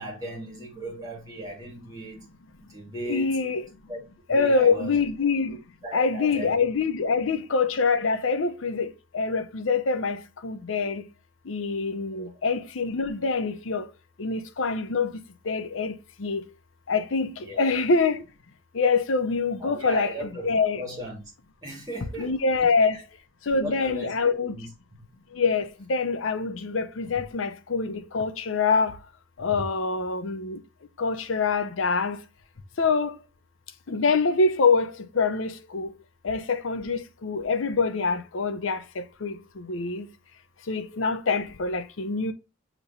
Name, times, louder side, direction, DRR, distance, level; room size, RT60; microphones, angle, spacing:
voice 1, 0.0-2.2 2.6-3.4 3.9-4.0 4.3-5.0 5.5-5.6 5.8-6.6 12.2-12.4 17.4-17.8 19.6-21.2 21.6-22.3 23.5-24.7, right 1 dB, 20° right, 2.1 m, -37 dB
voice 2, 3.0-3.6 4.3-5.6 5.9-11.0 11.5-13.8 14.2-15.2 15.5-15.9 16.2-16.4 16.9-18.2 18.7-20.8 22.2-23.0 23.5-24.5 25.4-29.0 29.4-30.6 31.0-32.2 32.8-33.1 33.9-35.9 36.2-40.1 40.7-42.3, left 4 dB, 80° left, 0.6 m, -25 dB
6.6 x 3.0 x 2.6 m
head